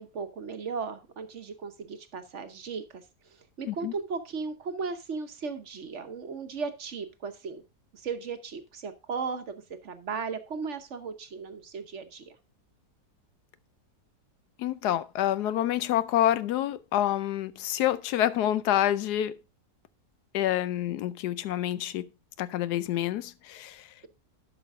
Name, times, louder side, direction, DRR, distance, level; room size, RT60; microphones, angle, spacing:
voice 1, 0.0-7.6 7.9-12.4, right 5 dB, 55° right, 1.1 m, -36 dB
voice 2, 14.6-19.4 20.3-22.1 22.4-23.9, left 12 dB, 80° left, 1.2 m, -27 dB
11.5 x 6.2 x 3.6 m
omnidirectional pair, 1.7 m